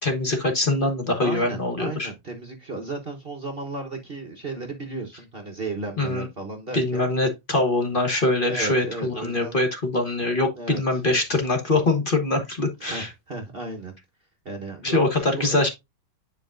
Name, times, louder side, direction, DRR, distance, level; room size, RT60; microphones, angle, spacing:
voice 1, 0.0-2.1 6.0-6.3 6.7-13.1 14.8-15.7, left 2 dB, 30° left, 1.3 m, -23 dB
voice 2, 1.2-7.0 8.5-9.6 10.6-11.0 12.8-13.9 14.4-15.7, right 3 dB, 35° right, 1.2 m, -34 dB
9.9 x 4.8 x 2.5 m
omnidirectional pair, 2.0 m